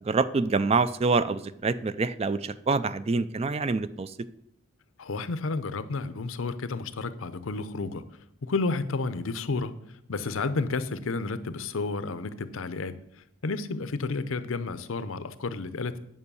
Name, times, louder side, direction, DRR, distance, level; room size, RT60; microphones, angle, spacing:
voice 1, 0.0-4.1, right 4 dB, 30° right, 15 dB, 0.3 m, -26 dB
voice 2, 5.0-8.0 8.4-9.7 10.1-12.9 13.4-16.0, left 3 dB, 70° left, 13 dB, 0.6 m, -31 dB
9.5 x 5.5 x 6.9 m, 0.75 s
head